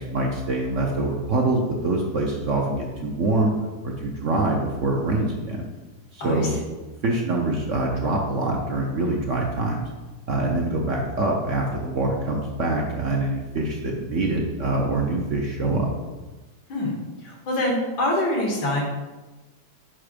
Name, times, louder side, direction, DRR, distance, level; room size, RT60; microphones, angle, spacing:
voice 1, 0.0-3.5 3.8-5.6 6.1-6.5 7.0-9.8 10.3-15.9, right 2 dB, 55° right, 0 dB, 0.9 m, -24 dB
voice 2, 6.2-6.5 16.7-18.8, left 1 dB, 90° left, -1 dB, 2.4 m, -25 dB
5.9 x 5.0 x 5.0 m, 1.2 s
omnidirectional pair, 2.0 m